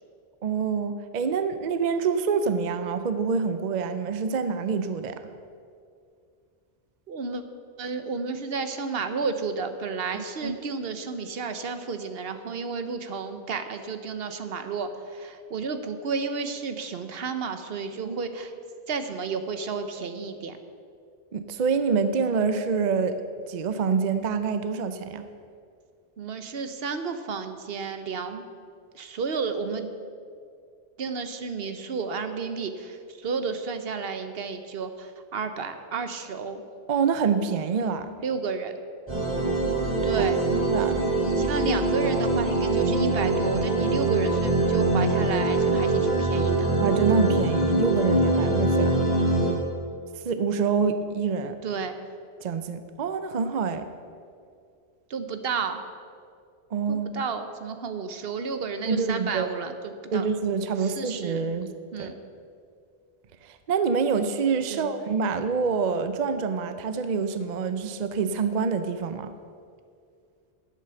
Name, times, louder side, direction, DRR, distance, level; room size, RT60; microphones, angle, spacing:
voice 1, 0.4-5.2 10.4-10.5 18.0-18.2 21.3-23.2 23.5-25.3 36.9-38.1 40.5-41.0 46.8-49.0 50.2-51.6 52.4-53.9 56.7-57.1 58.9-59.5 60.1-61.7 62.0-62.1 63.4-69.3, right 5 dB, 50° right, 10 dB, 0.7 m, -26 dB
voice 2, 7.1-7.4 7.8-18.5 18.9-20.6 26.2-28.4 28.9-29.9 31.0-36.6 38.2-38.7 40.0-40.4 41.2-46.7 51.6-52.0 55.1-55.8 56.9-60.3 60.8-61.4 61.9-62.1 64.7-64.9, right 5 dB, 70° right, 8 dB, 1.0 m, -32 dB
sound 1, 39.1-49.5, right 2 dB, 25° right, 3.9 m, -23 dB
11.0 x 8.4 x 6.9 m, 2.3 s
omnidirectional pair, 1.0 m